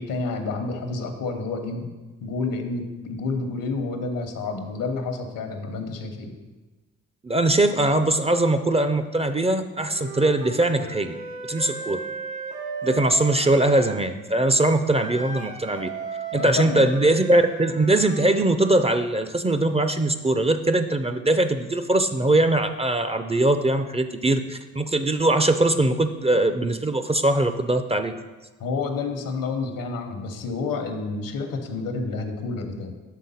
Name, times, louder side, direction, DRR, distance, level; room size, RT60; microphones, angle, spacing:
voice 1, 0.0-1.9 2.2-6.3 16.3-16.8 28.6-32.9, left 3 dB, 75° left, 5 dB, 1.0 m, -29 dB
voice 2, 7.2-11.2 11.5-12.0 12.8-15.9 16.3-28.1, right 2 dB, 20° right, 9 dB, 0.5 m, -21 dB
Wind instrument woodwind instrument, 9.9-14.0 15.0-18.3, right 4 dB, 85° right, 1.0 m, -36 dB
6.5 x 3.7 x 5.6 m, 1.2 s
supercardioid pair, 50°, 34 cm